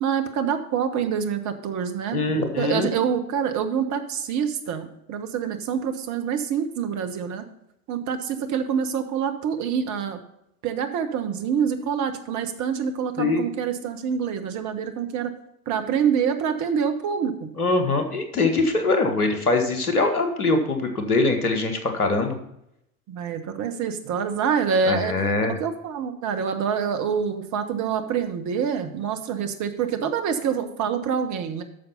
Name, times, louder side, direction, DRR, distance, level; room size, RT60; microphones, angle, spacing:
voice 1, 0.0-2.2 2.6-7.4 7.9-10.2 10.6-15.3 15.7-17.5 23.1-25.1 25.6-31.6, right 7 dB, 40° right, 7 dB, 1.3 m, -26 dB
voice 2, 2.1-2.9 13.2-13.5 17.6-22.4 24.8-25.6, left 3 dB, 85° left, 6 dB, 1.4 m, -23 dB
8.8 x 6.4 x 5.5 m, 0.80 s
figure-of-eight pair, 70°, 44 cm